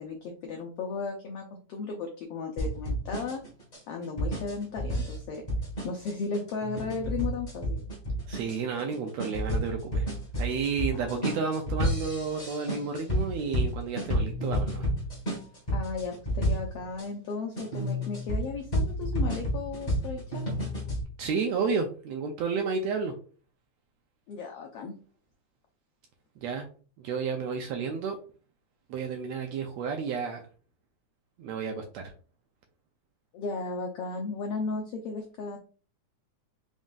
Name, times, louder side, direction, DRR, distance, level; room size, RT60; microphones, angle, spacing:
voice 1, 0.0-3.4 3.9-5.4 5.8-7.9 11.0-11.1 15.7-20.4 24.3-24.9 33.3-35.6, left 4 dB, 85° left, 2 dB, 1.3 m, -35 dB
sound 1, 2.6-17.0 17.6-21.0, equal, 40° left, 0.6 m, -31 dB
voice 2, 8.3-14.9 21.2-23.1 26.4-26.7 27.0-28.2 28.9-30.4 31.4-32.1, right 5 dB, 80° right, 3 dB, 1.6 m, -31 dB
5.2 x 3.6 x 2.4 m, 0.39 s
omnidirectional pair, 3.6 m